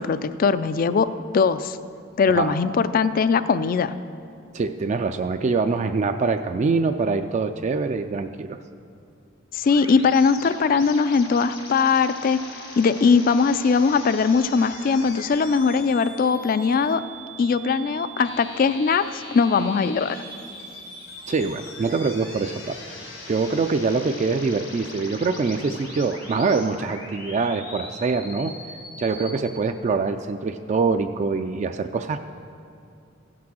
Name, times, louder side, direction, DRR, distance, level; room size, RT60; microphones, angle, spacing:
voice 1, 0.0-1.8 2.2-3.9 9.5-12.4 12.8-17.0 17.4-20.2, left 5 dB, 45° left, 14 dB, 0.4 m, -20 dB
voice 2, 4.5-8.6 21.3-23.0 23.3-28.5 29.0-32.2, right 4 dB, 35° right, 8 dB, 0.3 m, -24 dB
sound 1, 9.7-29.4, left 1 dB, 85° left, 3.2 m, -40 dB
15.5 x 6.0 x 6.2 m, 2.5 s
head